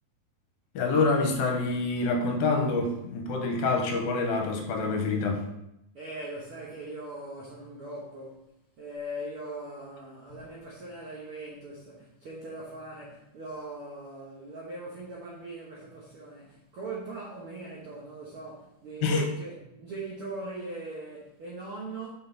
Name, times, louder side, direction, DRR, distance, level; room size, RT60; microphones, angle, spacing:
voice 1, 0.7-5.4 19.0-19.3, left 3 dB, 75° left, 2.9 m, -26 dB
voice 2, 5.9-8.4 8.8-22.1, right 2 dB, 70° right, 1.3 m, -40 dB
6.6 x 6.4 x 4.0 m
omnidirectional pair, 4.4 m